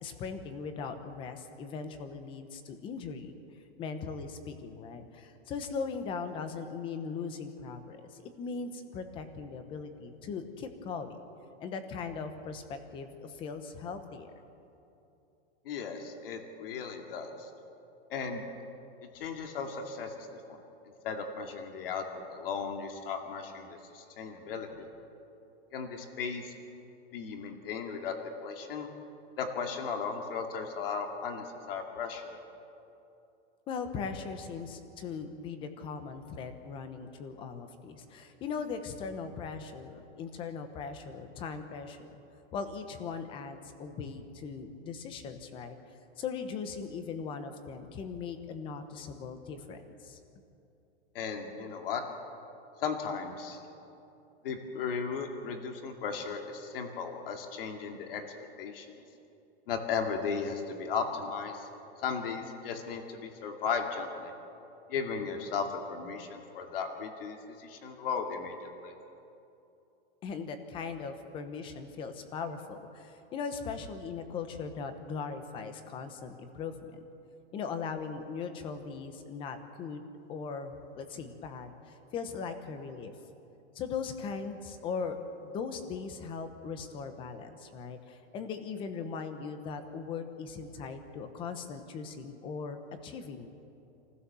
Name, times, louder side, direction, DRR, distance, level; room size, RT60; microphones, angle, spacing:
voice 1, 0.0-3.3 3.8-11.2 11.6-14.3 33.7-42.1 42.5-45.8 46.2-50.2 70.2-77.0 77.5-83.1 83.7-93.5, left 5 dB, 15° left, 8 dB, 1.0 m, -39 dB
voice 2, 15.6-17.5 18.1-18.4 19.1-20.6 21.0-22.0 22.3-24.8 25.7-26.5 27.1-28.1 28.4-28.9 29.4-32.4 51.1-52.0 52.8-53.6 54.4-58.2 58.6-58.9 59.7-61.7 62.0-64.3 64.9-68.9, left 5 dB, 55° left, 4 dB, 2.4 m, -36 dB
28.0 x 15.5 x 7.0 m, 2.8 s
supercardioid pair, 175°, 33 cm